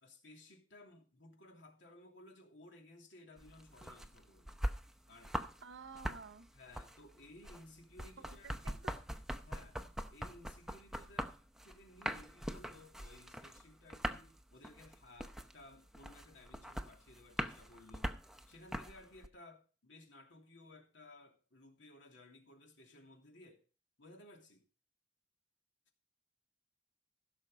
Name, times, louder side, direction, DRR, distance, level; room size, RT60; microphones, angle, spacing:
voice 1, 0.0-4.6 5.1-5.4 6.5-8.5 9.4-9.8 10.1-11.3 11.6-18.2 18.5-23.6 24.0-24.6, left 2 dB, 70° left, 2.8 m, -58 dB
sound 1, 3.4-5.6 5.9-19.3, equal, 5° right, 0.8 m, -42 dB
voice 2, 5.6-6.5 8.2-8.9, right 4 dB, 80° right, 1.0 m, -52 dB
16.0 x 6.6 x 5.0 m
head